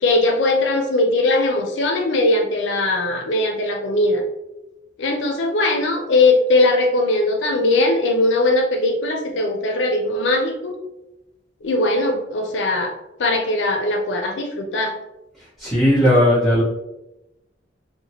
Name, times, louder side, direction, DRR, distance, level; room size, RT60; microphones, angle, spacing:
voice 1, 0.0-4.2 5.0-10.7 11.6-12.9 13.2-14.9, left 2 dB, 85° left, 3 dB, 0.4 m, -20 dB
voice 2, 15.6-16.6, left 1 dB, ahead, -11 dB, 1.2 m, -16 dB
2.8 x 2.1 x 2.8 m, 0.93 s
head